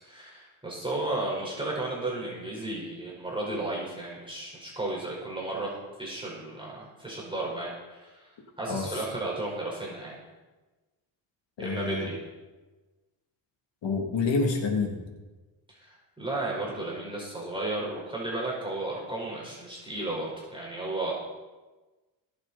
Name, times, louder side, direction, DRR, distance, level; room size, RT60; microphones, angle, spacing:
voice 1, 0.0-8.3 8.6-10.2 11.6-12.2 15.7-21.1, right 2 dB, 10° right, -5 dB, 5.0 m, -34 dB
voice 2, 8.6-9.0 11.6-12.1 13.8-15.1, left 4 dB, 65° left, 2 dB, 3.0 m, -28 dB
21.5 x 7.9 x 4.3 m, 1.2 s
cardioid pair, 85°, 48 cm